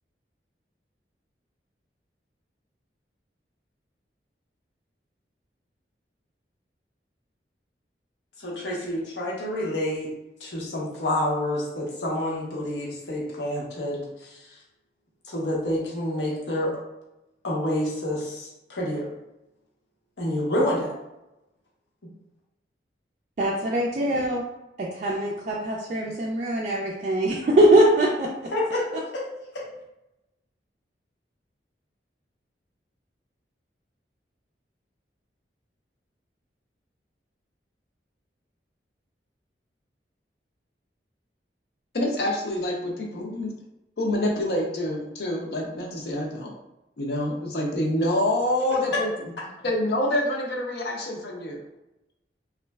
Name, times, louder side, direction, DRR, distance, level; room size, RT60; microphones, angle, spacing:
voice 1, 8.4-10.1 10.4-14.4 15.3-16.8 17.4-19.1 20.2-20.9 28.5-28.9 29.1-29.3 29.5-29.6 48.7-49.0, left 1 dB, 85° left, -4 dB, 0.9 m, -28 dB
voice 2, 23.4-24.4 24.9-28.3, right 1 dB, 40° right, -3 dB, 0.3 m, -22 dB
voice 3, 41.9-43.5 44.0-46.5 47.0-49.1 49.6-51.6, left 1 dB, 60° left, -1 dB, 0.6 m, -26 dB
3.0 x 2.4 x 2.2 m, 0.92 s
head